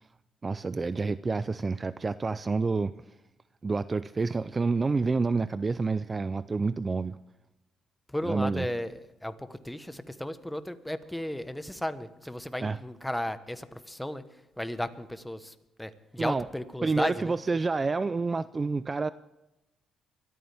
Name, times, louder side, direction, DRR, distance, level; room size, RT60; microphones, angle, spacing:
voice 1, 0.4-2.9 3.6-7.2 8.2-8.7 12.6-12.8 16.2-16.5 16.8-19.1, right 4 dB, 30° right, 15 dB, 0.4 m, -28 dB
voice 2, 8.1-14.2 14.6-17.3, left 1 dB, 5° left, 11 dB, 1.2 m, -34 dB
23.5 x 14.0 x 3.5 m, 0.95 s
cardioid pair, 90°, 0 cm